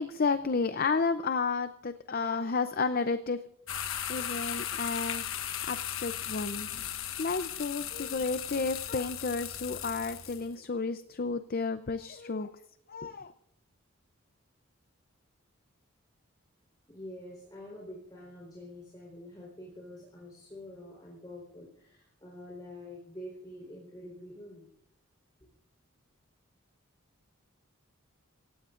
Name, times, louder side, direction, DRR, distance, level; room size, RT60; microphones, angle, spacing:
voice 1, 0.0-3.4 4.1-6.7 7.2-12.5 12.9-13.3, left 4 dB, 45° left, 10 dB, 0.6 m, -32 dB
sound 1, 3.7-10.5, left 10 dB, 75° left, 1.1 m, -37 dB
voice 2, 16.9-24.7, left 1 dB, 20° left, -4 dB, 4.1 m, -46 dB
27.5 x 16.5 x 2.5 m, 0.74 s
head